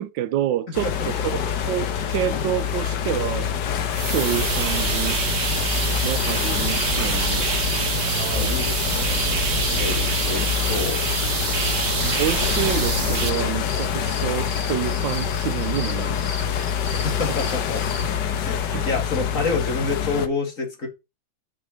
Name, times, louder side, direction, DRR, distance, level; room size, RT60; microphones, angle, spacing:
voice 1, 0.0-0.9 1.2-3.5 4.0-5.2 6.0-7.7 8.3-8.6 12.0-16.5 18.7-18.8, right 12 dB, 75° right, 1.3 m, -28 dB
sound 1, 0.7-20.3, left 8 dB, 65° left, 1.5 m, -26 dB
sound 2, 3.9-13.3, right 5 dB, 40° right, 1.1 m, -25 dB
sound 3, 5.4-18.2, left 2 dB, 85° left, 3.5 m, -38 dB
voice 2, 8.2-11.0 16.9-17.8 18.4-20.9, left 3 dB, 40° left, 2.5 m, -28 dB
6.1 x 5.3 x 6.2 m
omnidirectional pair, 2.1 m